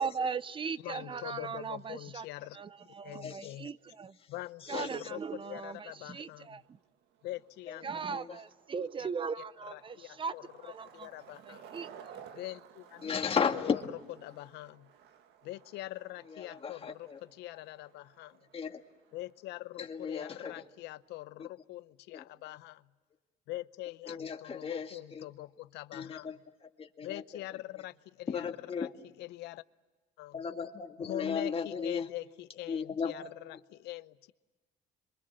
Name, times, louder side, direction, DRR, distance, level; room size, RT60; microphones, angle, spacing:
voice 1, 0.0-2.2 2.5-4.2 4.7-6.8 7.8-10.3 10.6-11.1 11.5-12.2, right 5 dB, 30° right, 0.7 m, -38 dB
voice 2, 0.8-2.6 3.0-3.7 4.3-6.6 7.2-7.9 9.0-9.1 9.6-10.4 10.9-11.7 12.3-13.2 13.5-13.8 14.2-14.9 15.4-18.4 19.1-22.9 23.5-26.3 27.0-28.5 28.8-28.9 29.2-29.6 30.2-30.4 31.0-34.3, left 17 dB, 85° left, 0.7 m, -43 dB
voice 3, 3.2-3.5 4.6-4.9 7.7-7.8 8.1-8.4 13.0-13.8 16.3-17.2 18.5-18.8 19.8-20.6 21.4-21.5 22.1-22.2 24.1-25.3 25.9-26.4 26.8-27.2 28.3-28.9 30.3-32.1 32.7-33.1, left 6 dB, 35° left, 2.0 m, -35 dB
Skateboard, 6.2-21.3, right 8 dB, 80° right, 1.9 m, -57 dB
27.0 x 24.0 x 7.5 m
cardioid pair, 110°, 17 cm